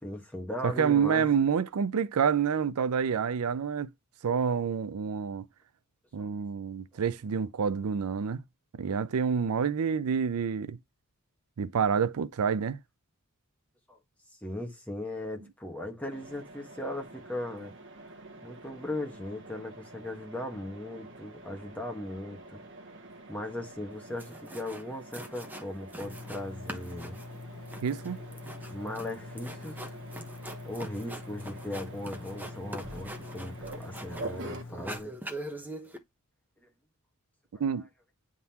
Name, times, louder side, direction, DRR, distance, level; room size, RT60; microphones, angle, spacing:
voice 1, 0.0-1.3 6.2-6.3 13.9-14.0 14.4-17.7 18.4-22.6 23.3-27.2 28.7-29.9 30.6-35.2 36.6-36.7 37.5-37.6, left 1 dB, 5° left, 1.3 m, -38 dB
voice 2, 0.6-3.9 4.2-5.5 6.1-8.4 8.7-10.8 11.6-12.8 27.8-28.2 37.6-37.8, right 6 dB, 75° right, 0.5 m, -28 dB
Mechanisms, 16.1-34.6, right 2 dB, 60° right, 1.1 m, -47 dB
sound 1, 23.9-24.0 24.2-24.8 25.1-26.4 26.7-34.4 34.7-36.0, right 1 dB, 10° right, 0.9 m, -43 dB
Engine, 26.0-35.0, left 3 dB, 65° left, 0.9 m, -45 dB
9.4 x 3.7 x 2.8 m
head